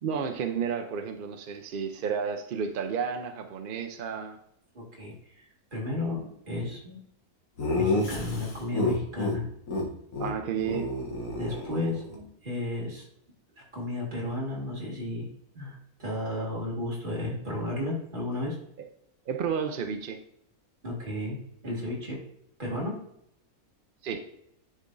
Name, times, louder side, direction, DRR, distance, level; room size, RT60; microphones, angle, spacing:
voice 1, 0.0-4.4 10.2-10.9 19.3-20.2 24.0-24.2, right 6 dB, 70° right, 5 dB, 0.5 m, -31 dB
voice 2, 4.7-7.0 7.8-9.5 11.4-13.1 13.6-15.3 15.5-18.6 20.8-22.2 22.6-22.9, left 2 dB, 35° right, -4 dB, 2.0 m, -33 dB
Laughter, 7.6-9.4 9.7-9.8 10.1-10.3 10.6-12.2, left 2 dB, 60° left, 1.6 m, -29 dB
9.9 x 4.2 x 2.5 m, 0.73 s
omnidirectional pair, 1.6 m